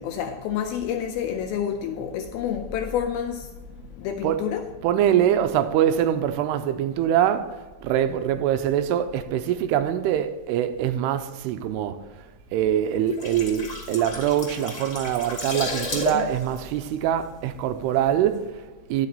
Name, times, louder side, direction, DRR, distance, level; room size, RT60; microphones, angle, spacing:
voice 1, 0.0-3.6 3.9-4.6 16.0-16.3, left 9 dB, 85° left, 2.2 m, -29 dB
voice 2, 4.8-12.3 12.5-19.1, right 10 dB, 80° right, 2.5 m, -24 dB
sound 1, 12.9-17.8 18.1-18.3, left 2 dB, 35° left, 1.2 m, -33 dB
11.0 x 6.6 x 4.1 m
omnidirectional pair, 4.9 m